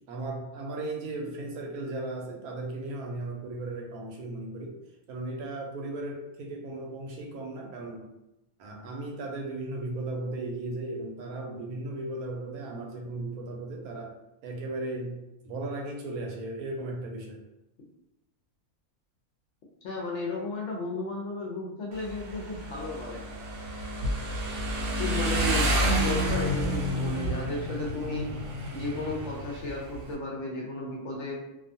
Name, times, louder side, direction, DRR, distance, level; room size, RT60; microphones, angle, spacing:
voice 1, 0.1-4.8 5.1-8.1 8.6-14.2 14.4-17.4, right 2 dB, 90° right, 0 dB, 1.1 m, -36 dB
voice 2, 19.8-23.2 25.0-28.3 28.7-31.4, left 2 dB, 65° left, -2 dB, 0.8 m, -34 dB
Motorcycle, 21.9-30.1, equal, 70° right, 0.8 m, -30 dB
2.6 x 2.2 x 2.6 m, 0.92 s
omnidirectional pair, 1.5 m